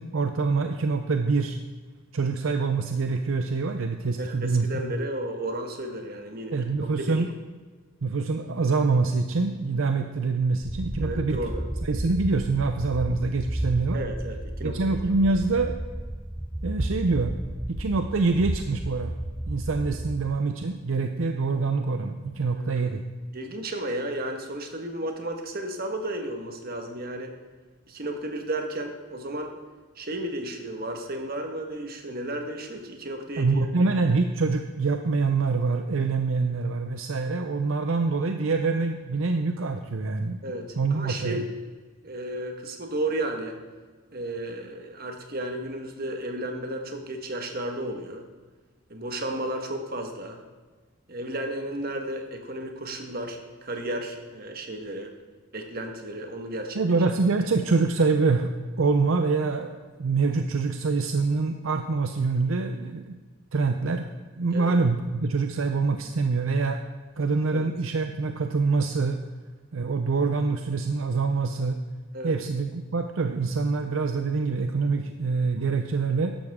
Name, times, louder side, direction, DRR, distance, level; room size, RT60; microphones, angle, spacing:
voice 1, 0.0-1.6 2.1-4.7 6.5-7.3 8.0-11.4 11.8-14.0 14.6-15.7 16.6-17.3 17.7-19.1 19.5-23.0 33.4-40.4 40.8-41.4 56.8-59.7 60.0-63.2 63.5-66.8 67.2-69.2 69.7-71.8 72.2-76.4, right 4 dB, 70° right, 6 dB, 0.6 m, -25 dB
voice 2, 4.2-6.7 7.1-7.2 11.0-11.6 13.9-15.0 22.5-22.8 23.3-27.3 27.9-29.5 29.9-33.6 40.4-41.5 42.0-43.6 44.1-48.2 48.9-50.4 51.1-55.1 55.5-56.8 64.5-64.7 67.5-67.7 72.1-72.4, right 1 dB, 45° right, 4 dB, 1.5 m, -33 dB
sound 1, 10.6-20.4, right 1 dB, 10° right, 0.3 m, -33 dB
13.5 x 11.5 x 3.6 m, 1.4 s
head